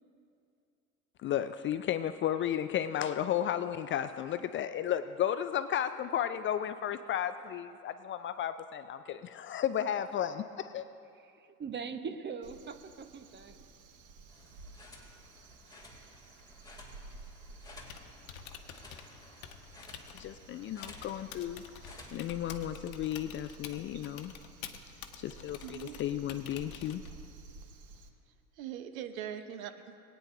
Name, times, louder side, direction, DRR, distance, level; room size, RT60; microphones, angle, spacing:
voice 1, 1.2-10.9 20.1-21.6 22.1-24.3 25.2-27.0, left 10 dB, 30° left, 11 dB, 0.4 m, -33 dB
voice 2, 11.2-13.6, right 5 dB, 25° right, 8 dB, 1.0 m, -41 dB
Crow, 12.4-28.1, right 4 dB, 45° right, 1.3 m, -53 dB
sound 1, 14.3-22.4, left 2 dB, 10° left, 2.7 m, -55 dB
Typing, 17.7-27.3, left 8 dB, 65° left, 1.1 m, -49 dB
voice 3, 25.6-26.0 28.6-30.0, right 9 dB, 70° right, 8 dB, 1.0 m, -42 dB
22.0 x 9.2 x 2.7 m, 2.5 s
hypercardioid pair, 75°, 43 cm